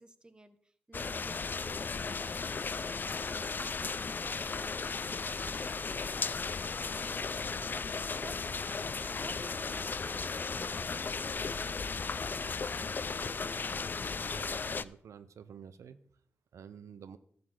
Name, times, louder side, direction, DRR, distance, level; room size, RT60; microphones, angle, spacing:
voice 1, 0.0-6.4 7.4-11.8, right 2 dB, 15° right, 10 dB, 0.9 m, -54 dB
sound 1, 0.9-14.8, left 4 dB, 40° left, 0.4 m, -35 dB
voice 2, 14.3-16.0 16.5-17.2, right 7 dB, 85° right, 13 dB, 0.5 m, -50 dB
12.0 x 4.0 x 7.9 m, 0.62 s
cardioid pair, 85°, 5 cm